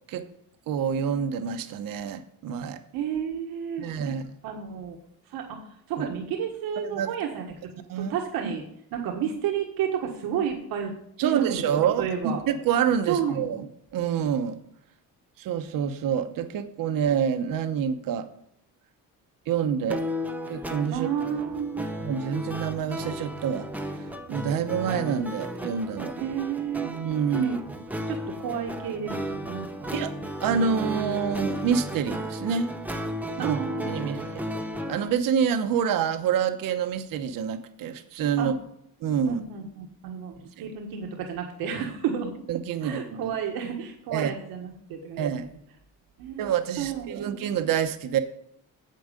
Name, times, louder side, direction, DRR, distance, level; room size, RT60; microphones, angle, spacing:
voice 1, 0.7-2.8 3.8-4.2 6.0-6.1 6.8-7.1 7.9-8.1 8.4-8.5 11.2-13.7 13.9-14.6 15.4-18.3 19.5-20.0 20.5-21.1 22.0-26.1 26.8-27.8 29.9-30.1 30.4-32.7 33.4-33.6 33.8-34.5 34.9-38.5 39.0-39.4 40.6-40.7 42.5-43.2 44.1-44.3 45.2-45.5 46.4-48.2, right 7 dB, 70° right, 1.0 m, -27 dB
voice 2, 2.9-4.2 4.4-5.0 5.3-7.4 8.0-8.6 8.9-10.9 11.2-12.4 13.1-13.5 20.9-21.9 26.2-26.9 27.4-27.6 28.1-30.0 33.4-34.2 38.4-38.5 39.3-42.3 42.8-45.5 46.2-46.5 46.8-47.3, right 8 dB, 90° right, 1.6 m, -31 dB
sound 1, 19.9-35.1, equal, 5° right, 0.8 m, -34 dB
9.4 x 7.8 x 5.1 m
cardioid pair, 145°, 35 cm